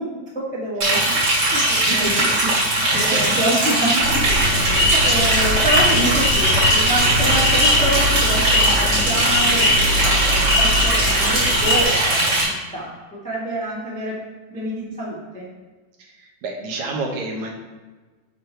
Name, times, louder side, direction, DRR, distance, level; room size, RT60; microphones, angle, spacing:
voice 1, 0.0-2.5 2.8-14.2 14.5-15.5, right 1 dB, 10° left, -6 dB, 0.4 m, -27 dB
Liquid, 0.8-12.4, right 1 dB, 45° right, 3.2 m, -20 dB
voice 2, 1.8-2.6 2.9-3.4 16.0-17.5, right 2 dB, 70° right, 0 dB, 2.3 m, -29 dB
sound 1, 4.0-11.8, left 1 dB, 65° left, 2.9 m, -21 dB
6.9 x 4.2 x 4.5 m, 1.3 s
omnidirectional pair, 3.5 m